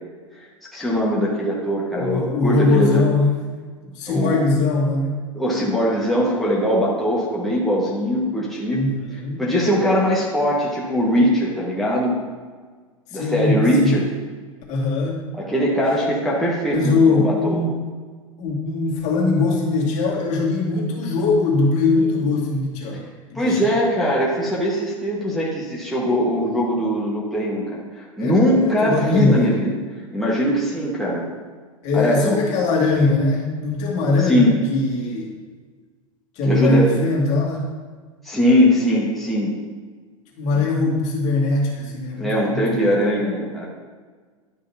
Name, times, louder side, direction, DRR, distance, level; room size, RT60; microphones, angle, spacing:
voice 1, 0.7-3.0 4.1-4.4 5.3-8.8 9.4-12.1 13.1-14.1 15.3-17.6 23.3-29.7 30.1-31.3 31.9-32.4 34.2-34.5 36.4-37.0 38.2-39.5 40.5-40.6 42.2-43.6, equal, ahead, -6 dB, 1.5 m, -21 dB
voice 2, 2.0-3.4 3.8-5.2 8.7-9.4 13.1-14.0 14.7-15.2 16.7-17.8 18.4-23.0 23.3-23.7 28.2-29.4 31.8-35.3 36.4-37.7 40.4-42.9, left 3 dB, 40° left, -3 dB, 2.2 m, -21 dB
11.5 x 6.3 x 2.8 m, 1.5 s
figure-of-eight pair, 95°, 18 cm